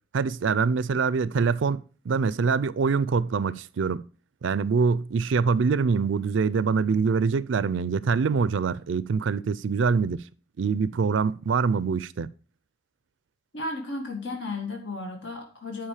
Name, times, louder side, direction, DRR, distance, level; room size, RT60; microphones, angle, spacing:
voice 1, 0.1-1.8 2.1-4.0 4.4-10.2 10.6-12.3, right 5 dB, 80° right, 0.4 m, -24 dB
voice 2, 13.5-15.9, left 2 dB, 70° left, 1.8 m, -34 dB
10.0 x 5.1 x 4.9 m
head